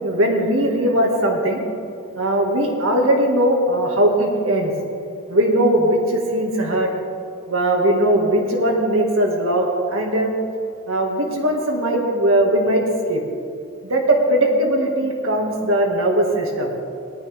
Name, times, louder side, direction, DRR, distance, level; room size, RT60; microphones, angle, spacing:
voice 1, 0.0-1.6 2.2-4.7 5.3-6.9 7.5-10.3 10.9-13.2 13.8-16.7, right 1 dB, 70° right, 0 dB, 2.1 m, -19 dB
18.0 x 12.0 x 3.6 m, 2.4 s
head